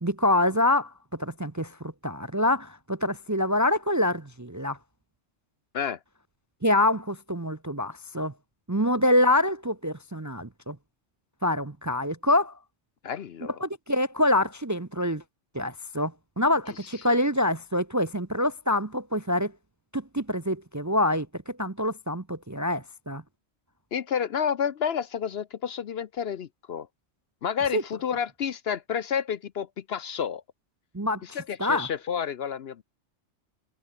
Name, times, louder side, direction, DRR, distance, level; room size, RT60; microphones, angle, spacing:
voice 1, 0.0-4.8 6.6-8.3 8.7-10.8 11.4-12.6 13.6-15.2 15.5-19.5 19.9-23.2 27.7-27.8 30.9-31.9, left 1 dB, 20° right, 0.6 m, -26 dB
voice 2, 13.0-13.5 23.9-26.9 27.4-30.4 31.2-32.8, left 7 dB, 60° left, 0.9 m, -30 dB
omnidirectional pair, 1.3 m